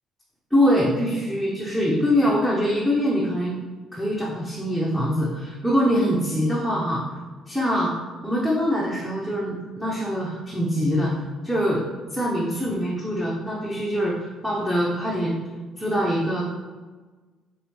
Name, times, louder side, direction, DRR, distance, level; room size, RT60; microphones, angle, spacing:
voice 1, 0.5-3.6 3.9-7.0 7.5-7.9 8.2-11.1 11.4-11.8 12.1-15.4 15.8-16.4, equal, ahead, -5 dB, 0.8 m, -23 dB
4.8 x 3.3 x 3.2 m, 1.3 s
cardioid pair, 105°, 0 cm